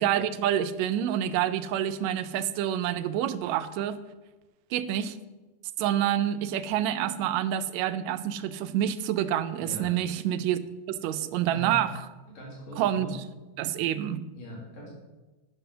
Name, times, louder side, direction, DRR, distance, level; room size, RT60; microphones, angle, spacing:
voice 1, 0.0-4.0 4.7-5.2 5.8-10.6 10.9-12.0 12.8-13.2 13.6-14.2, right 11 dB, 80° right, 12 dB, 1.8 m, -27 dB
voice 2, 9.6-9.9 11.5-11.8 12.3-13.2 14.4-14.9, right 1 dB, 70° left, -5 dB, 4.2 m, -40 dB
9.3 x 6.1 x 6.9 m, 1.2 s
omnidirectional pair, 3.4 m